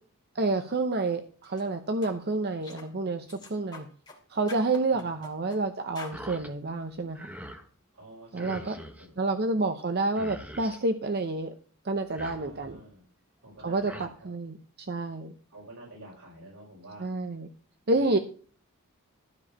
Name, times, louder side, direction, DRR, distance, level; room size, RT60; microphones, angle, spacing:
voice 1, 0.3-3.9 4.3-7.3 8.3-8.7 9.2-11.5 11.8-12.8 13.6-13.9 14.2-14.6 14.9-15.3 17.0-17.5 17.9-18.2, right 2 dB, 45° right, 7 dB, 0.8 m, -29 dB
sound 1, 1.4-1.6 2.0-2.2 2.6-2.9 3.3-4.2 4.5-5.6 5.9-6.2, left 3 dB, 20° left, 2.6 m, -46 dB
sound 2, 6.1-6.5 6.9-7.7 8.4-9.1 9.8-9.9 10.1-10.8 12.0-12.8 13.6-14.1, equal, 5° right, 1.2 m, -44 dB
voice 2, 7.9-9.1 12.2-13.0 13.4-14.3 15.5-17.1 17.9-18.2, right 1 dB, 85° right, -4 dB, 5.4 m, -49 dB
13.0 x 4.7 x 7.2 m, 0.42 s
head